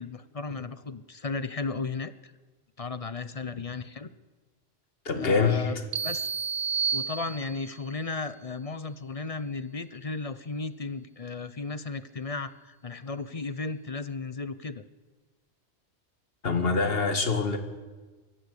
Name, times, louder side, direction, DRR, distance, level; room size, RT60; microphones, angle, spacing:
voice 1, 0.0-2.3 2.8-4.1 5.2-5.8 6.0-6.3 6.9-14.8, left 4 dB, 35° left, 13 dB, 0.7 m, -35 dB
voice 2, 5.1-5.8 16.4-17.6, left 4 dB, 60° left, 6 dB, 2.0 m, -25 dB
sound 1, 5.9-7.8, right 6 dB, 70° right, 1.0 m, -30 dB
22.0 x 15.0 x 8.3 m, 1.3 s
omnidirectional pair, 1.2 m